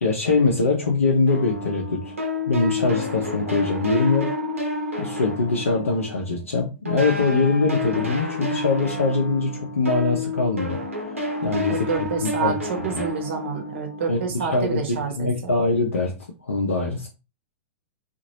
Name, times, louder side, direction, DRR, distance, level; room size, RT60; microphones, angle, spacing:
voice 1, 0.0-2.1 2.5-4.3 5.0-10.8 11.4-12.5 12.9-13.0 14.1-14.2 14.5-16.1 16.5-17.1, left 3 dB, 80° left, -2 dB, 0.7 m, -23 dB
sound 1, 1.3-6.5 6.9-14.6, left 2 dB, 85° right, 0.9 m, -30 dB
voice 2, 11.7-15.5, right 6 dB, 60° right, 3 dB, 1.0 m, -28 dB
2.9 x 2.5 x 2.8 m, 0.29 s
figure-of-eight pair, 100°, 7 cm